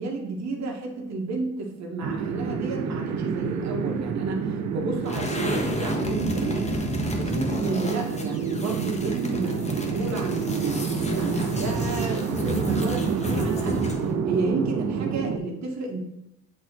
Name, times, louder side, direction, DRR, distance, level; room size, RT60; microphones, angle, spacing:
voice 1, 0.0-6.7 7.1-14.0 14.3-16.0, right 3 dB, 65° right, 0 dB, 1.4 m, -31 dB
sound 1, 2.0-15.4, right 6 dB, 85° right, 0.7 m, -29 dB
sound 2, 5.0-14.1, left 1 dB, 20° left, 1.1 m, -31 dB
8.2 x 2.9 x 4.4 m, 0.87 s
cardioid pair, 90°, 30 cm